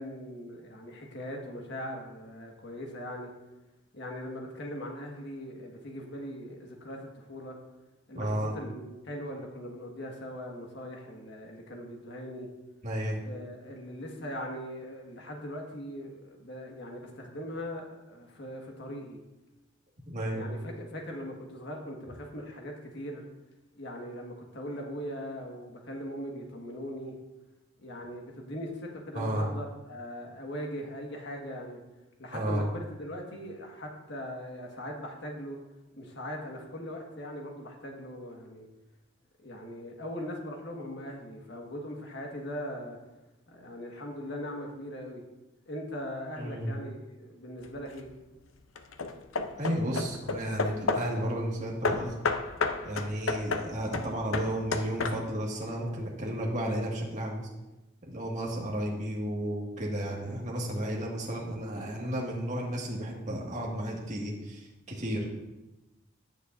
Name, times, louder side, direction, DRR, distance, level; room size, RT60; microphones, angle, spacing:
voice 1, 0.0-3.3 3.9-7.6 8.1-12.5 13.2-19.2 20.3-23.2 23.7-27.1 27.8-31.8 32.2-35.6 35.9-38.7 39.4-43.0 43.5-45.2 45.6-48.1, equal, 60° left, 1 dB, 1.7 m, -40 dB
voice 2, 8.1-8.5 12.8-13.2 20.1-20.5 29.1-29.5 32.3-32.7 46.4-46.7 49.6-52.1 52.8-57.5 58.0-65.4, right 1 dB, 35° right, -3 dB, 2.0 m, -33 dB
Hammer / Wood, 47.6-48.1 48.8-51.2 51.8-55.5, left 4 dB, 80° left, 0.6 m, -32 dB
16.5 x 6.6 x 2.6 m, 1.0 s
head